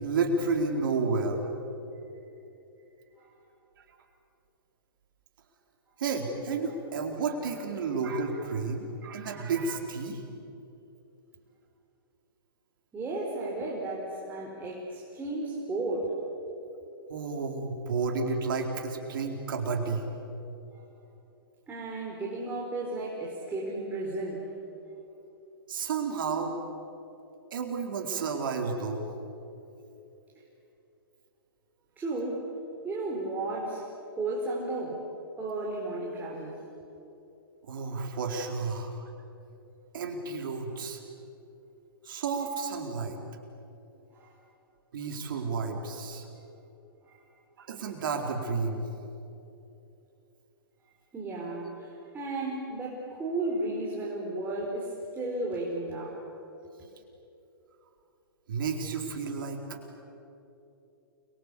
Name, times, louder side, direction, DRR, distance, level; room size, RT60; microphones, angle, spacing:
voice 1, 0.0-1.4 6.0-10.2 17.1-20.0 25.7-26.5 27.5-29.1 37.6-39.1 39.9-41.0 42.0-43.2 44.9-46.3 47.7-48.8 58.5-59.8, right 4 dB, 65° right, 3 dB, 4.3 m, -31 dB
voice 2, 12.9-16.1 21.7-24.5 32.0-32.4 32.8-33.8 34.2-35.0 35.4-36.6 44.2-44.3 47.1-47.2 51.1-51.9 52.1-56.2, right 2 dB, 15° right, -4 dB, 4.9 m, -33 dB
29.5 x 23.5 x 8.5 m, 2.9 s
hypercardioid pair, 125°, 12 cm